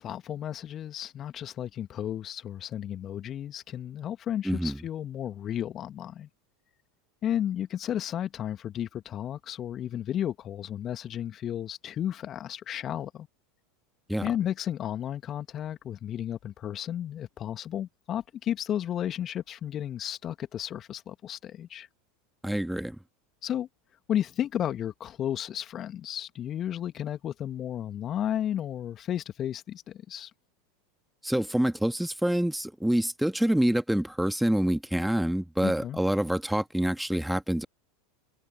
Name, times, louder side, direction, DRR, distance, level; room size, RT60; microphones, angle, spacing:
voice 1, 0.0-6.3 7.2-13.3 14.2-21.9 23.4-23.7 24.1-30.3 35.6-36.0, left 10 dB, 35° left, 1.8 m, -33 dB
voice 2, 4.4-4.8 14.1-14.3 22.4-23.0 31.2-37.7, right 1 dB, ahead, 2.0 m, -26 dB
figure-of-eight pair, 80°, 0 cm